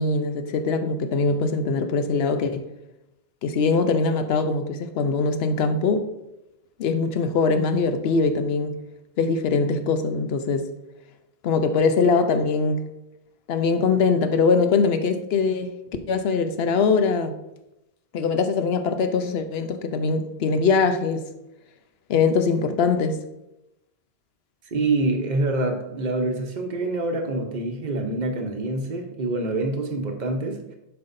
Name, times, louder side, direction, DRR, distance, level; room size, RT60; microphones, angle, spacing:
voice 1, 0.0-2.6 3.4-6.1 6.8-8.8 9.2-10.6 11.4-12.9 13.5-15.7 16.1-17.3 18.1-21.2 22.1-23.2, left 4 dB, 80° left, 8 dB, 0.9 m, -22 dB
voice 2, 24.7-30.6, right 2 dB, 45° right, 4 dB, 0.9 m, -26 dB
7.9 x 5.7 x 2.6 m, 0.89 s
omnidirectional pair, 1.0 m